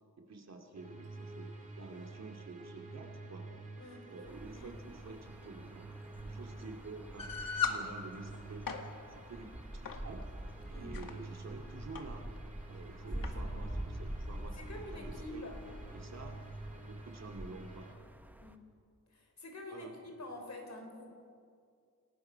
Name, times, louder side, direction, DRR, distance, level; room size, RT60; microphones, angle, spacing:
voice 1, 0.2-3.5 4.1-5.9 6.2-8.7 9.1-10.2 10.7-12.3 12.7-15.5 15.9-16.4 16.8-17.9 19.7-20.0, right 3 dB, 50° right, 3 dB, 2.3 m, -49 dB
sound 1, 0.7-17.9, right 3 dB, 20° right, 2.7 m, -50 dB
sound 2, 4.3-18.6, right 1 dB, 5° right, 0.8 m, -46 dB
sound 3, 7.2-7.8 8.5-8.8 9.9-10.1 10.7-11.1 12.0-12.1 12.4-12.5 13.2-13.4, left 7 dB, 80° left, 1.8 m, -36 dB
voice 2, 10.7-11.0 13.1-13.5 14.6-15.6 18.4-18.7 19.1-21.1, left 1 dB, 55° left, 4 dB, 3.9 m, -47 dB
27.5 x 19.0 x 5.7 m, 2.3 s
wide cardioid pair, 180°, 34 cm